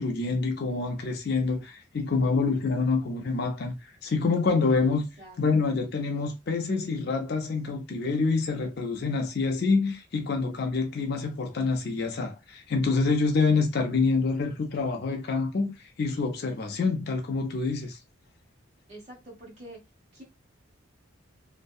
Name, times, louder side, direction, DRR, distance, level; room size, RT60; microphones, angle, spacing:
voice 1, 0.0-3.7 4.0-5.1 5.4-18.0, left 4 dB, 50° left, 0.4 m, -26 dB
voice 2, 4.8-5.4 13.5-13.7 18.9-19.8 20.1-20.2, right 1 dB, 30° right, 1.3 m, -46 dB
2.6 x 2.0 x 2.3 m
head